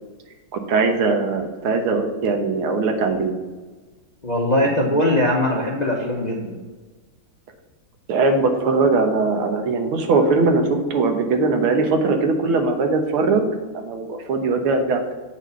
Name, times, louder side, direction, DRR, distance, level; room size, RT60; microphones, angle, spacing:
voice 1, 0.5-3.3 8.1-13.5 13.7-15.1, right 3 dB, 90° right, 4 dB, 1.9 m, -20 dB
voice 2, 4.2-6.6, left 1 dB, 35° left, -2 dB, 0.7 m, -21 dB
7.9 x 4.2 x 6.7 m, 1.3 s
omnidirectional pair, 2.3 m